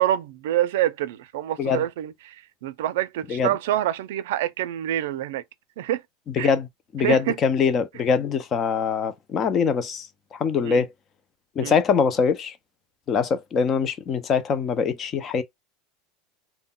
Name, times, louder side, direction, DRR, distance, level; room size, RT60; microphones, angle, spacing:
voice 1, 0.0-5.4 5.8-6.0 6.4-6.5 7.0-7.4 10.6-10.8 11.6-11.8, right 13 dB, 75° right, 0.4 m, -26 dB
voice 2, 6.3-6.7 6.9-10.1 10.3-10.9 11.6-12.6 13.1-15.4, left 6 dB, 25° left, 0.4 m, -23 dB
2.2 x 2.1 x 3.7 m
supercardioid pair, 175°, 0 cm